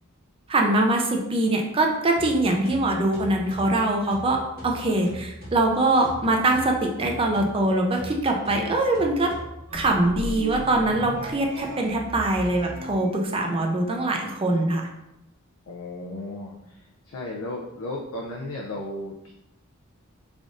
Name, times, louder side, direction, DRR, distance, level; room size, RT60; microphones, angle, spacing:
voice 1, 0.5-9.3 9.7-14.8, right 2 dB, 25° right, 1 dB, 0.5 m, -23 dB
sound 1, 2.2-9.9, equal, 45° right, 1.4 m, -41 dB
sound 2, 9.7-13.1, right 1 dB, 70° right, 0.8 m, -36 dB
voice 2, 15.7-19.3, left 1 dB, 70° left, -2 dB, 0.5 m, -35 dB
3.4 x 2.5 x 3.7 m, 0.88 s
head